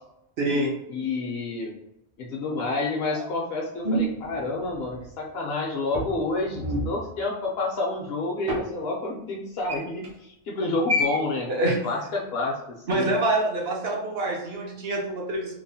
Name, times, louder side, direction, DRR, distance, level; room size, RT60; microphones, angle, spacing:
voice 1, 0.4-0.7 3.1-3.2 11.5-11.8 12.9-15.5, right 1 dB, 65° right, -1 dB, 0.8 m, -26 dB
voice 2, 0.9-1.7 2.2-13.1, left 3 dB, 65° left, -1 dB, 0.7 m, -29 dB
sound 1, 3.8-5.1 5.9-7.0 8.5-8.7 9.7-10.1 10.9-11.2, equal, 45° right, 0.4 m, -27 dB
2.9 x 2.0 x 2.6 m, 0.84 s
omnidirectional pair, 1.2 m